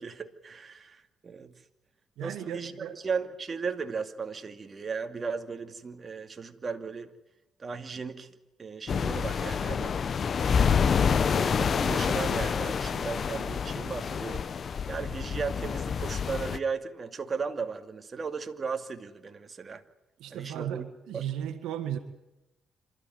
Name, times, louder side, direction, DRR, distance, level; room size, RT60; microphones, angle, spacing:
voice 1, 0.0-1.5 2.2-7.1 7.6-8.3 8.6-9.9 10.4-14.5 14.9-19.8 20.3-20.8 21.1-21.3, right 5 dB, 35° right, 6 dB, 2.5 m, -36 dB
voice 2, 2.2-3.0 20.2-22.0, right 10 dB, 90° right, 7 dB, 1.9 m, -35 dB
sound 1, 8.9-16.6, left 6 dB, 50° left, 0.9 m, -28 dB
27.0 x 14.0 x 9.5 m, 0.96 s
cardioid pair, 90°, 0 cm